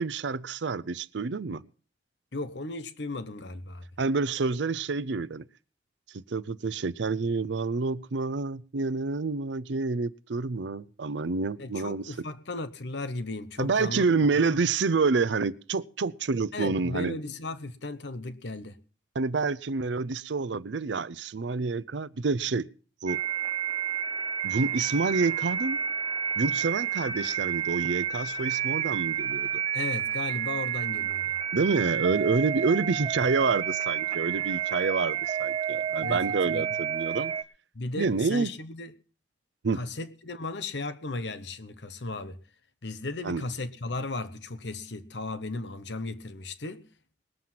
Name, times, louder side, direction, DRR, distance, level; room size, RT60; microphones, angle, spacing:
voice 1, 0.0-1.6 4.0-5.4 6.1-12.1 13.6-17.2 19.1-22.7 23.0-23.2 24.4-25.8 26.4-29.6 31.5-37.3 38.0-38.5 39.6-39.8 43.2-43.4, right 4 dB, 75° right, 0.6 m, -28 dB
voice 2, 2.3-3.8 11.6-14.0 14.3-14.6 16.5-18.8 29.7-31.4 36.0-36.6 37.7-38.9 39.7-42.4 42.8-46.9, left 2 dB, 70° left, 1.0 m, -36 dB
sound 1, 23.1-37.4, right 9 dB, 30° right, 0.9 m, -30 dB
20.5 x 7.6 x 5.8 m
head